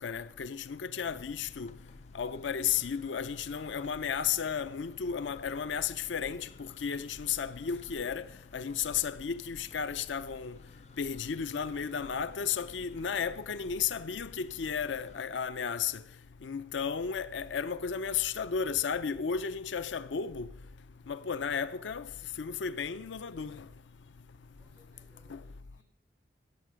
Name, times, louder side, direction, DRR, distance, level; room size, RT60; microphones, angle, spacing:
voice 1, 0.0-1.7 2.1-8.3 8.5-10.5 11.0-16.0 16.4-20.5 21.1-22.1 22.4-23.7 25.3-25.4, left 7 dB, 85° left, 0.5 m, -33 dB
sound 1, 1.0-15.2, left 2 dB, 35° left, 0.4 m, -54 dB
voice 2, 24.5-25.8, left 1 dB, 15° right, 4.1 m, -66 dB
16.0 x 8.3 x 6.3 m
head